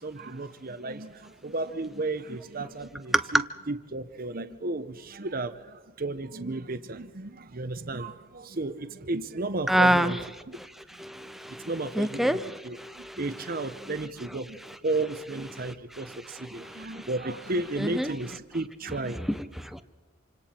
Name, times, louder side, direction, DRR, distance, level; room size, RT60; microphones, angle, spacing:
voice 1, 0.0-3.4 3.7-10.2 10.5-10.6 11.6-12.4 12.6-19.2, right 2 dB, 45° right, 9 dB, 0.9 m, -33 dB
voice 2, 9.7-10.2 10.6-10.7 11.0-11.7 11.9-13.2 15.6-15.7 16.4-17.1 17.8-18.1 19.2-19.8, right 1 dB, ahead, 10 dB, 0.7 m, -27 dB
27.5 x 26.0 x 4.4 m, 1.3 s
head